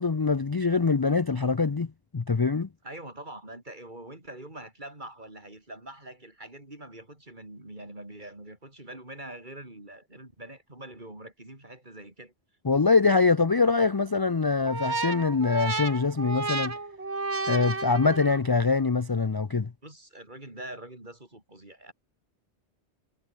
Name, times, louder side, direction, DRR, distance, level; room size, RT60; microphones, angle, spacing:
voice 1, 0.0-1.9 2.1-2.7 12.6-16.7 17.5-19.7, left 4 dB, 30° left, 0.5 m, -24 dB
voice 2, 2.8-12.3 19.8-21.9, right 1 dB, 45° right, 5.3 m, -44 dB
sound 1, 14.7-18.6, right 3 dB, 80° right, 3.4 m, -32 dB
omnidirectional pair, 1.1 m